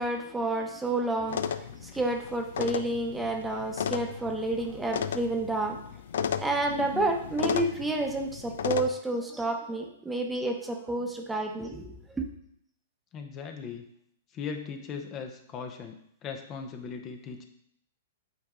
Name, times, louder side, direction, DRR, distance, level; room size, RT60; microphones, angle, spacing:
voice 1, 0.0-5.8 6.4-12.3, right 2 dB, 10° right, 3 dB, 0.9 m, -30 dB
sound 1, 1.3-8.9, left 7 dB, 75° left, 0.4 m, -34 dB
voice 2, 13.1-13.9 14.3-17.4, left 5 dB, 30° left, 5 dB, 0.8 m, -38 dB
8.2 x 4.5 x 3.7 m, 0.70 s
hypercardioid pair, 130°, 0 cm